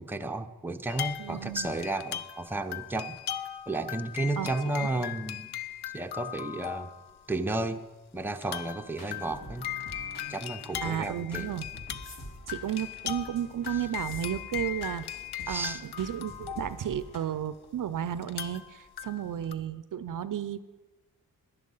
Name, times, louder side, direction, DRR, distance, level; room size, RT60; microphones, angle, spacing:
voice 1, 0.0-3.2 3.7-5.5 5.9-6.9 7.3-7.8 8.1-9.6 10.3-11.5 15.5-15.8, right 2 dB, 5° right, 6 dB, 0.7 m, -33 dB
sound 1, 0.9-7.2 7.7-7.8 8.4-17.5 18.2-19.5, left 11 dB, 90° left, 0.6 m, -39 dB
voice 2, 1.2-1.7 4.4-4.5 4.8-5.1 10.8-11.7 12.5-15.1 15.5-20.6, right 10 dB, 55° right, 15 dB, 0.5 m, -33 dB
sound 2, 8.9-17.2, equal, 60° left, 2.5 m, -47 dB
sound 3, 12.0-13.0 13.9-14.3 14.6-15.1 15.4-15.5 15.8-16.1 17.1-17.2, left 1 dB, 35° left, 2.0 m, -51 dB
10.5 x 10.5 x 5.5 m, 1.2 s
cardioid pair, 55°, 38 cm